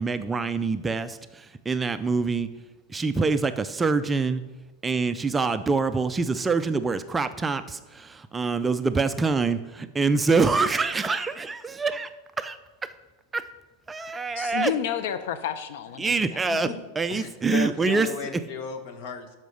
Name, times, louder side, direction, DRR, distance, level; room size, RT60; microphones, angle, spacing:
voice 1, 0.0-2.5 2.9-4.4 4.8-12.1 12.4-12.6 12.8-12.9 13.3-13.5 13.9-14.7 16.0-16.7 17.0-18.1, right 4 dB, 10° right, 10 dB, 0.4 m, -25 dB
voice 2, 14.4-16.5, left 9 dB, 65° left, 11 dB, 0.7 m, -31 dB
voice 3, 17.1-19.4, left 6 dB, 50° left, 7 dB, 1.4 m, -35 dB
12.5 x 5.6 x 6.4 m, 1.1 s
supercardioid pair, 145°, 0 cm